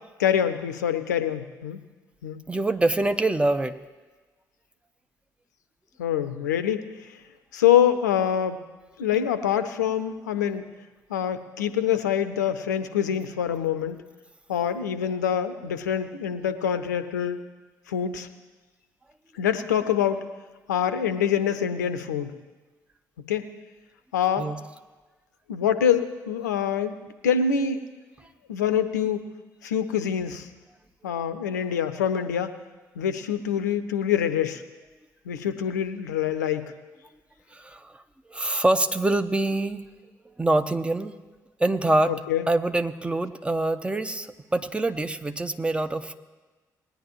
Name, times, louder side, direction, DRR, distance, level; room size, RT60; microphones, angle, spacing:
voice 1, 0.2-1.8 2.2-2.4 6.0-6.8 7.5-8.6 9.0-10.6 11.1-14.0 14.5-17.4 17.9-18.3 19.4-20.2 20.7-22.4 23.3-23.4 24.1-24.5 25.5-26.9 27.2-27.8 28.5-29.2 29.6-30.5 31.0-32.5 33.0-34.6 35.3-36.7 42.1-42.5, left 9 dB, 80° left, 11 dB, 0.6 m, -25 dB
voice 2, 2.5-3.7 24.4-24.6 31.0-31.1 37.5-38.0 38.3-39.8 40.4-41.1 41.6-42.1 42.5-46.2, right 2 dB, 10° right, 10 dB, 0.8 m, -25 dB
19.5 x 10.0 x 3.0 m, 1.3 s
figure-of-eight pair, 40°, 9 cm